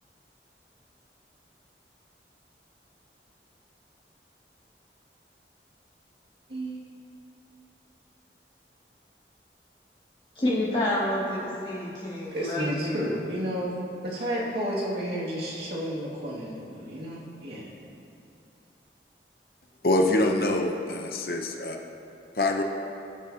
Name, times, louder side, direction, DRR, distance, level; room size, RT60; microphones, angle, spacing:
voice 1, 6.5-6.8 12.3-13.7 14.0-17.7, equal, 70° right, -6 dB, 2.2 m, -31 dB
voice 2, 10.4-13.2, left 1 dB, 30° left, -8 dB, 2.3 m, -29 dB
voice 3, 19.8-21.8 22.3-22.6, left 1 dB, 55° left, 2 dB, 0.8 m, -25 dB
19.0 x 7.0 x 2.8 m, 2.7 s
head